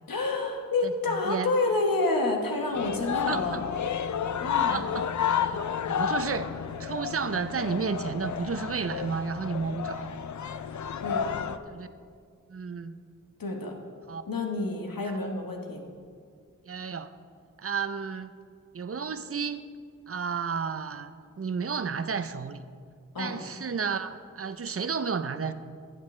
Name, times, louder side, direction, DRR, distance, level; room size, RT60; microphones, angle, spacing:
voice 1, 0.1-3.6 4.4-4.9 11.0-11.5 13.4-13.7 14.3-15.8 23.1-23.4, left 2 dB, 90° left, 2 dB, 1.2 m, -29 dB
voice 2, 0.8-1.5 3.3-3.6 4.7-5.6 5.9-10.1 11.7-11.9 12.5-13.0 14.1-14.2 16.7-17.1 17.6-18.3 18.7-19.6 20.1-22.7 23.2-25.5, right 5 dB, 45° right, 11 dB, 0.5 m, -32 dB
sound 1, 2.7-11.6, left 8 dB, 60° left, 0.4 m, -31 dB
15.5 x 8.3 x 3.2 m, 2.2 s
wide cardioid pair, 60°, 33 cm